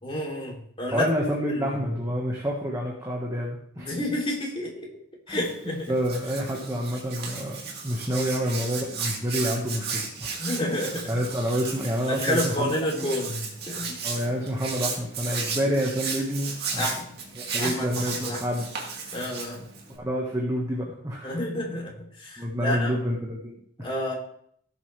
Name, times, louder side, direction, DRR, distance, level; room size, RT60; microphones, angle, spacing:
voice 1, 0.0-1.1 1.5-1.9 3.8-4.9 5.3-5.9 8.1-8.3 10.3-11.1 12.1-14.0 16.8-17.1 17.6-18.4 19.1-19.6 21.2-23.0 23.8-24.1, left 1 dB, 30° left, -2 dB, 3.2 m, -30 dB
voice 2, 0.9-3.9 5.3-5.4 5.7-7.6 7.8-10.3 11.1-12.7 13.0-13.1 14.0-16.9 17.4-18.7 19.9-21.3 22.4-23.9, equal, 20° right, -2 dB, 1.6 m, -28 dB
Hands, 5.3-20.0, right 5 dB, 55° right, 2.4 m, -35 dB
17.0 x 7.4 x 3.4 m, 0.64 s
head